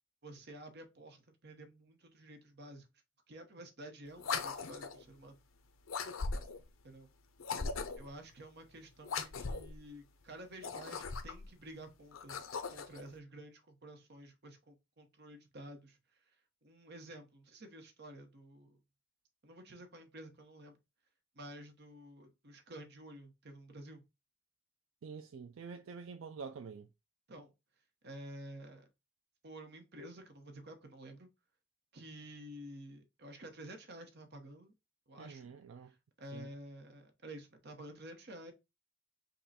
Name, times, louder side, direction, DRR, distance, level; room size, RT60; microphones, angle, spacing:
voice 1, 0.2-2.9 3.3-5.3 6.8-7.1 8.0-12.4 12.7-16.0 16.6-18.8 19.4-20.8 21.3-24.0 27.3-27.5 28.0-28.9 29.4-31.3 31.9-34.7 35.1-35.4 35.9-38.5, right 1 dB, 55° right, 1.1 m, -51 dB
sound 1, 4.2-5.0 5.9-6.7 7.4-8.1 9.0-9.8 10.5-11.5 12.1-13.0, left 4 dB, 85° left, 0.7 m, -39 dB
voice 2, 25.0-26.9 35.2-35.9 36.3-36.5, right 5 dB, 75° right, 0.4 m, -47 dB
5.4 x 2.3 x 4.2 m
head